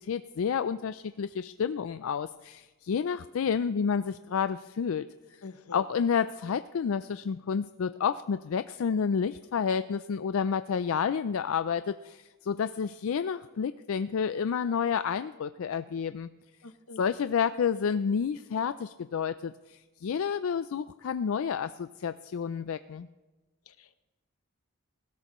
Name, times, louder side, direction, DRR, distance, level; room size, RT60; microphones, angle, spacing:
voice 1, 0.0-5.0 5.7-16.3 17.0-23.1, left 6 dB, 70° left, 12 dB, 0.4 m, -30 dB
voice 2, 5.4-5.8 16.6-17.0 23.7-24.0, left 3 dB, 90° left, 11 dB, 0.9 m, -46 dB
19.5 x 16.5 x 3.1 m, 1.2 s
head